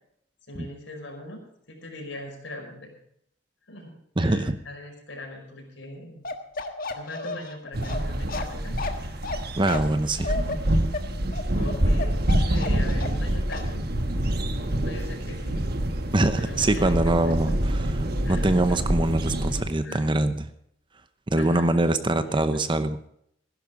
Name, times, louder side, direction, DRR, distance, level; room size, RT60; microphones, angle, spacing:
voice 1, 0.5-1.4 1.7-2.9 3.7-3.9 4.2-6.3 6.9-9.2 10.0-10.7 11.5-13.8 14.8-15.6 16.4-17.6 18.2-18.8 19.8-20.1 21.4-21.7 22.3-22.6, left 1 dB, 75° left, 1 dB, 5.2 m, -40 dB
voice 2, 4.2-4.6 9.6-10.4 16.1-20.4 21.3-23.0, right 2 dB, 25° right, 11 dB, 0.8 m, -24 dB
Bark, 6.2-13.2 13.5-13.7, left 3 dB, 50° left, 1.4 m, -33 dB
sound 1, 7.7-19.6, right 1 dB, 55° right, 1.3 m, -26 dB
15.5 x 11.0 x 5.1 m, 0.72 s
head